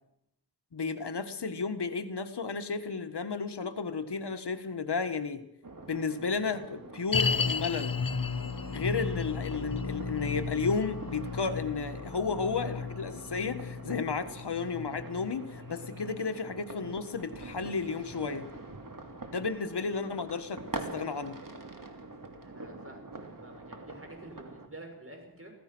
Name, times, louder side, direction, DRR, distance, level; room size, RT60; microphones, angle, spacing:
voice 1, 0.7-5.4 5.9-7.9 8.7-18.5 19.3-21.4, left 4 dB, 80° left, 9 dB, 1.5 m, -33 dB
sound 1, 5.6-24.7, right 2 dB, 55° right, 3.0 m, -45 dB
sound 2, 7.1-18.4 18.7-18.8 19.4-19.5, left 5 dB, 55° left, 1.4 m, -35 dB
voice 2, 22.4-25.5, right 1 dB, 35° right, 3 dB, 7.2 m, -49 dB
26.0 x 17.0 x 6.2 m, 0.78 s
wide cardioid pair, 45°, 40 cm